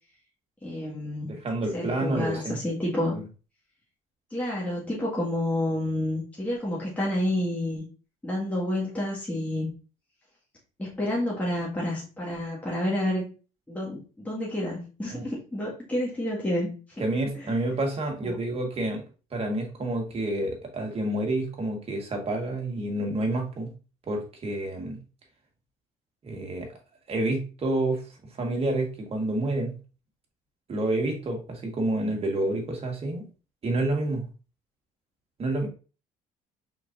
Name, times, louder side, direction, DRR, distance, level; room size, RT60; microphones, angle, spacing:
voice 1, 0.6-1.4 1.7-3.1 4.3-7.8 8.2-9.7 10.8-13.3 13.7-16.7 17.3-17.5 18.2-18.4 32.0-32.1, left 1 dB, 10° left, -5 dB, 1.9 m, -29 dB
voice 2, 1.2-2.6 3.1-3.2 15.1-15.3 17.0-19.0 19.3-23.7 24.1-25.0 26.2-26.7 27.1-28.0 28.4-29.7 30.7-33.3 33.6-34.3 35.4-35.7, right 2 dB, 40° right, 2 dB, 1.7 m, -28 dB
4.6 x 4.1 x 2.6 m, 0.34 s
supercardioid pair, 80°, 15 cm